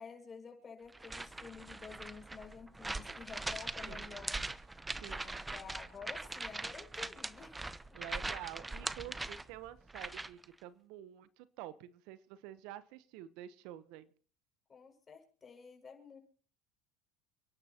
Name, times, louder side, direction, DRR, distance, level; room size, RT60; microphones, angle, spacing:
voice 1, 0.0-4.4 5.0-7.6 14.7-16.2, left 6 dB, 30° left, 2 dB, 6.2 m, -51 dB
sound 1, 0.9-10.5, right 2 dB, 10° right, 0.7 m, -41 dB
voice 2, 3.8-4.1 5.0-5.4 7.9-14.1, right 13 dB, 70° right, 15 dB, 0.9 m, -49 dB
30.0 x 11.0 x 2.9 m, 0.41 s
supercardioid pair, 95°, 0 cm